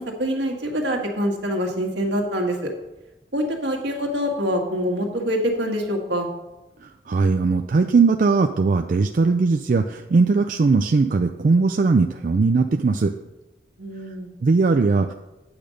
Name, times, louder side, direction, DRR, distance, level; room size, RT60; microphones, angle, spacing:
voice 1, 0.0-2.7 3.3-6.3 13.8-14.3, equal, 80° right, 1 dB, 1.7 m, -25 dB
voice 2, 6.8-13.1 14.4-15.1, right 4 dB, 50° right, 5 dB, 0.4 m, -19 dB
8.9 x 5.2 x 6.4 m, 1.0 s
head